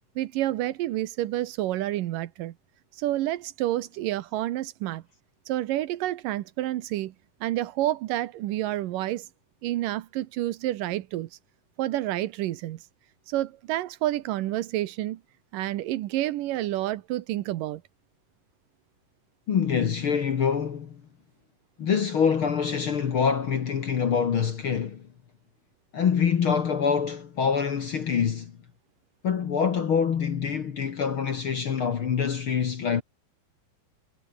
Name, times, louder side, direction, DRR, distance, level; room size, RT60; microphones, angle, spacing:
voice 1, 0.2-2.5 3.0-5.0 5.5-7.1 7.4-9.3 9.6-11.3 11.8-12.8 13.3-15.2 15.5-17.8, right 14 dB, 75° right, 2.5 m, -29 dB
voice 2, 19.5-21.0 21.8-25.0 25.9-28.6 29.2-33.0, left 7 dB, 50° left, 1.8 m, -25 dB
omnidirectional pair, 4.0 m